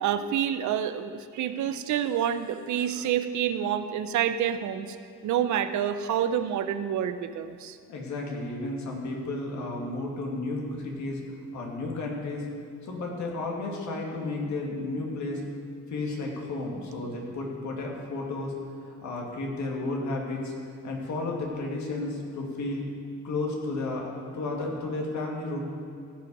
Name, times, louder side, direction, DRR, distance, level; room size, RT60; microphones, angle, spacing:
voice 1, 0.0-5.0 5.2-7.8, right 9 dB, 70° right, 11 dB, 0.7 m, -28 dB
voice 2, 7.9-11.2 11.5-12.4 12.8-15.4 15.9-18.5 18.9-20.5 20.8-22.9 23.2-25.6, left 2 dB, 70° left, -1 dB, 2.1 m, -32 dB
16.0 x 5.7 x 5.4 m, 2.3 s
cardioid pair, 90°, 30 cm